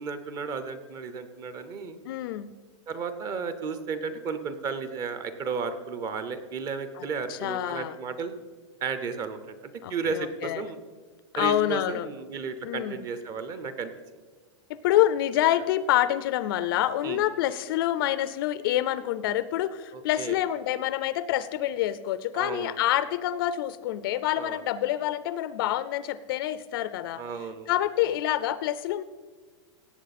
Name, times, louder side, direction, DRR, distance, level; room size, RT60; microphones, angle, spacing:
voice 1, 0.0-2.0 2.9-8.3 8.8-10.8 11.3-13.9 17.0-17.2 19.9-20.4 22.3-22.7 24.3-24.6 27.1-27.7, right 5 dB, 25° right, 11 dB, 0.7 m, -33 dB
voice 2, 2.1-2.5 7.0-7.1 7.3-7.9 9.8-10.7 11.3-12.1 12.6-13.0 14.7-27.2 27.7-29.0, left 13 dB, 50° left, 15 dB, 0.4 m, -27 dB
17.0 x 7.9 x 4.2 m, 1.4 s
supercardioid pair, 165°, 16 cm